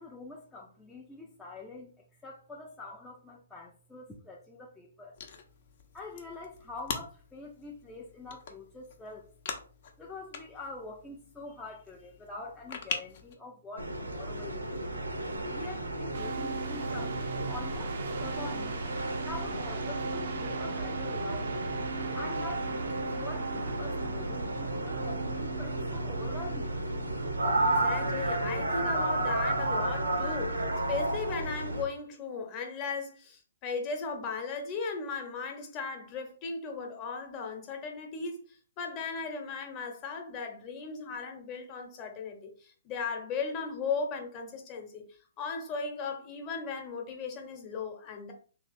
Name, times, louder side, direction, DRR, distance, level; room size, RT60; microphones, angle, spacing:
voice 1, 0.0-5.2 5.9-9.3 10.0-14.8 15.5-18.8 19.2-21.5 22.1-26.7, left 3 dB, 10° left, 0.6 m, -45 dB
sound 1, 5.1-13.3, left 6 dB, 50° left, 0.9 m, -43 dB
sound 2, 13.8-31.8, right 1 dB, 90° right, 1.1 m, -33 dB
sound 3, 16.1-28.1, right 4 dB, 55° right, 0.6 m, -38 dB
voice 2, 27.6-38.4 38.8-45.0 45.4-48.3, left 5 dB, 30° left, 1.1 m, -37 dB
3.2 x 3.0 x 4.3 m
hypercardioid pair, 140°, 0 cm